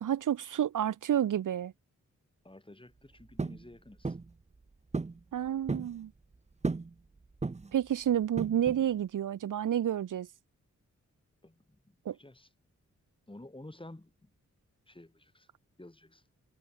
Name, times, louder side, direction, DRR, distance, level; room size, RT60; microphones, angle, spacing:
voice 1, 0.0-1.7 5.3-6.1 7.7-10.3 12.0-12.2, right 10 dB, 85° right, 0.8 m, -30 dB
voice 2, 2.4-4.2 11.4-12.5 13.3-14.3 14.9-15.5 15.8-16.2, left 1 dB, 15° left, 7.8 m, -51 dB
sound 1, 3.4-3.6 4.0-4.3 4.9-5.2 5.5-5.9 6.6-6.9 7.4-7.8 8.4-8.8, right 3 dB, 20° right, 0.7 m, -34 dB
cardioid pair, 70°, 31 cm